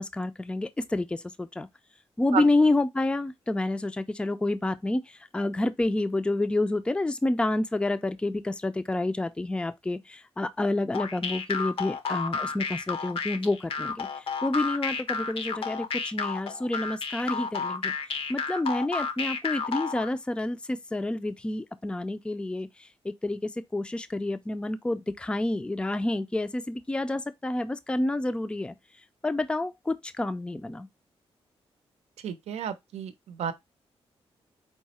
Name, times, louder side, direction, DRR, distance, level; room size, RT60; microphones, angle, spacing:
voice 1, 0.0-1.7 2.2-17.9 18.3-28.7 29.2-30.9, left 2 dB, 10° left, 0.4 m, -29 dB
sound 1, 10.9-20.1, left 5 dB, 60° left, 0.6 m, -31 dB
voice 2, 32.2-33.5, right 8 dB, 90° right, 0.6 m, -32 dB
4.6 x 2.1 x 4.1 m
cardioid pair, 105°, 11 cm